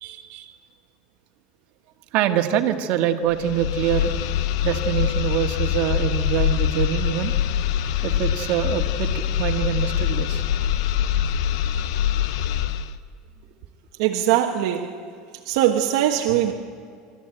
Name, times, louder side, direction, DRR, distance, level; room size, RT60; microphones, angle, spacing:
voice 1, 0.0-0.5 2.1-4.1 4.6-7.3 8.0-10.4, right 10 dB, 60° right, 5 dB, 1.8 m, -25 dB
sound 1, 3.3-13.0, left 10 dB, 80° left, 0.8 m, -24 dB
voice 2, 14.0-15.0 15.4-16.5, right 11 dB, 75° right, 1 dB, 1.3 m, -21 dB
27.0 x 13.5 x 9.1 m, 2.2 s
supercardioid pair, 125°, 3 cm